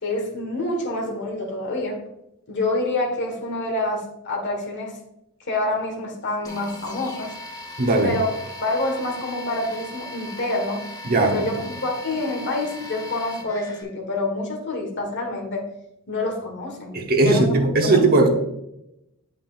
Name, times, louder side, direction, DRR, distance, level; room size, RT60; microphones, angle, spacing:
voice 1, 0.0-2.0 2.5-5.0 5.4-7.3 8.0-8.3 8.6-10.8 11.2-15.7 16.1-18.0, left 2 dB, 55° left, 0 dB, 1.6 m, -27 dB
sound 1, 6.4-13.8, left 1 dB, 15° left, 1.0 m, -38 dB
voice 2, 7.8-8.1 11.0-11.5 16.9-18.3, right 2 dB, 45° right, 2 dB, 1.1 m, -18 dB
8.6 x 5.6 x 2.6 m, 0.85 s
head